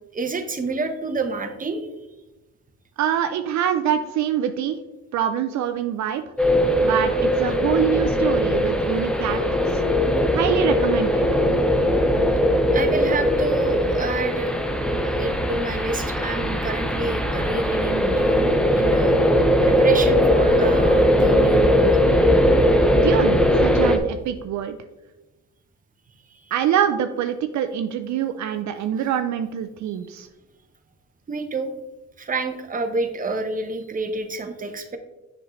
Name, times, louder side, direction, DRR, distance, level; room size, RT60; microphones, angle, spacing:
voice 1, 0.1-1.9 12.7-14.5 15.0-19.2 19.6-22.0 26.3-26.5 31.3-31.7 32.2-35.0, right 3 dB, 25° right, 6 dB, 0.9 m, -28 dB
voice 2, 3.0-4.8 5.1-6.2 6.8-9.8 10.3-11.3 22.9-24.8 26.5-30.3, right 9 dB, 70° right, 8 dB, 0.5 m, -25 dB
sound 1, 6.4-24.0, equal, 5° left, 0.6 m, -19 dB
7.1 x 5.4 x 3.1 m, 1.0 s
cardioid pair, 90°, 30 cm